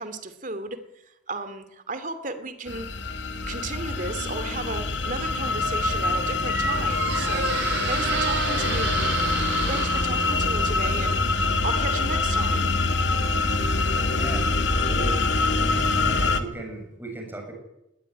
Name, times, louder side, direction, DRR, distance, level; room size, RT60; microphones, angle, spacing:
voice 1, 0.0-2.9 3.5-7.5 7.9-8.9 9.7-12.7, right 3 dB, 45° right, 11 dB, 2.6 m, -34 dB
sound 1, 2.7-16.4, left 3 dB, 75° left, 2.1 m, -25 dB
Squeak, 5.7-14.4, right 5 dB, 65° right, 4.8 m, -33 dB
voice 2, 14.0-14.5 14.7-15.2 15.4-15.7 16.0-17.5, right 2 dB, 10° right, 2 dB, 7.7 m, -37 dB
21.5 x 18.5 x 10.0 m, 0.88 s
head